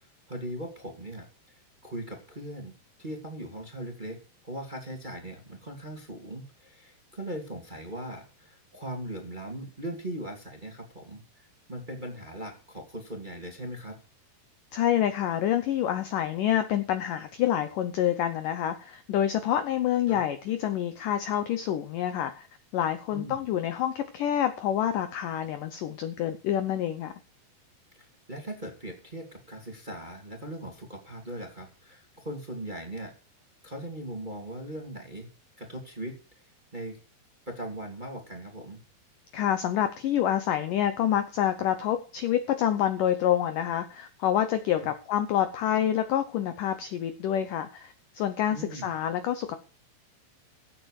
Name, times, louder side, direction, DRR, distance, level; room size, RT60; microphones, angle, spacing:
voice 1, 0.3-2.7 3.0-4.2 4.4-13.9 20.1-20.2 23.1-23.5 27.9-33.1 33.6-35.3 35.6-36.1 36.7-37.0 37.5-38.8 48.5-48.9, right 1 dB, 15° right, 1.9 m, -39 dB
voice 2, 14.7-22.5 22.7-27.1 39.3-49.6, left 10 dB, 75° left, 2.0 m, -27 dB
15.5 x 8.5 x 4.9 m
omnidirectional pair, 4.9 m